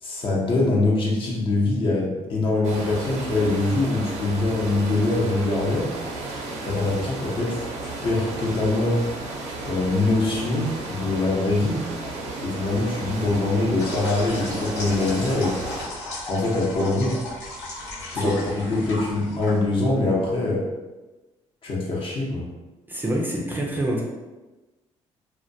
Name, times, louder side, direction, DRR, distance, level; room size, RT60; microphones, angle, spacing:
voice 1, 0.0-5.9 6.6-9.0 9.6-11.8 12.4-15.6 16.3-17.2 18.1-20.7 21.6-22.5, left 2 dB, 50° left, -4 dB, 0.7 m, -23 dB
sound 1, 2.6-15.9, right 2 dB, 80° right, 0.5 m, -33 dB
sound 2, 13.8-20.0, left 1 dB, 80° left, 1.0 m, -35 dB
voice 2, 22.9-24.0, right 1 dB, 15° right, -2 dB, 0.4 m, -26 dB
2.2 x 2.2 x 2.6 m, 1.1 s
cardioid pair, 100°, 12 cm